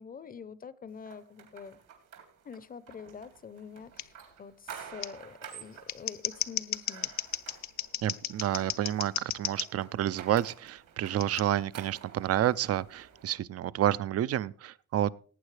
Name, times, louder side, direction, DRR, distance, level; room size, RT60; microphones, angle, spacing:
voice 1, 0.0-1.8 2.4-7.1, left 6 dB, 30° left, 0.7 m, -46 dB
sound 1, 1.1-13.3, right 8 dB, 80° right, 3.5 m, -50 dB
Scissors, 4.0-4.1 5.0-5.1 5.7-9.7 11.2-11.4, left 11 dB, 65° left, 0.8 m, -34 dB
voice 2, 8.0-15.1, right 12 dB, 50° right, 0.5 m, -29 dB
19.0 x 8.7 x 3.3 m
cardioid pair, 125°, 31 cm